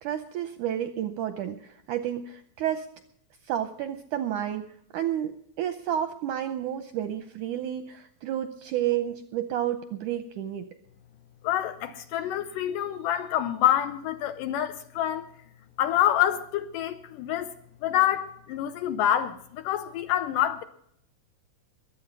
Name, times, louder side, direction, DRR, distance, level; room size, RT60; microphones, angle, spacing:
voice 1, 0.0-2.9 3.5-4.7 4.9-10.7, right 11 dB, 80° right, 1.8 m, -31 dB
voice 2, 11.4-15.3 15.8-17.5 17.8-20.6, left 11 dB, 75° left, 2.1 m, -27 dB
22.5 x 8.6 x 5.4 m
omnidirectional pair, 4.4 m